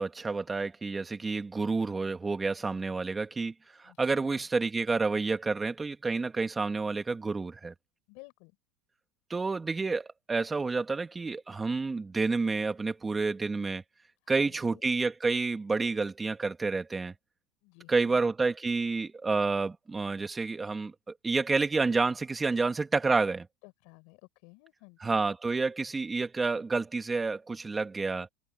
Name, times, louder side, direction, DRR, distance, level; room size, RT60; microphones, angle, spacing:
voice 1, 0.0-3.5 3.8-7.7 9.3-13.8 14.3-17.1 17.9-20.9 21.2-23.5 25.0-28.3, right 4 dB, 15° right, 2.3 m, -29 dB
voice 2, 3.8-4.5 8.1-8.6 14.2-14.9 17.6-18.2 23.6-25.3, left 28 dB, 65° left, 5.6 m, -55 dB
supercardioid pair, 130°, 0 cm